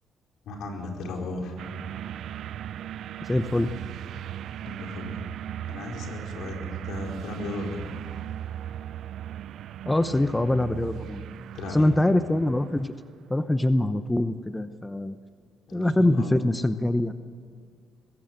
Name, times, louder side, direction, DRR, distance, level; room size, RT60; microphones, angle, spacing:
voice 1, 0.4-1.6 4.6-7.8 11.5-11.9 15.7-16.3, left 2 dB, 80° left, 1 dB, 4.6 m, -36 dB
sound 1, 1.6-13.0, right 11 dB, 75° right, 0.4 m, -38 dB
voice 2, 3.2-3.7 9.8-11.4 11.7-12.9 13.3-15.1 15.7-17.1, left 1 dB, 10° left, 10 dB, 0.8 m, -24 dB
20.5 x 17.0 x 8.0 m, 2.1 s
cardioid pair, 90°, 0 cm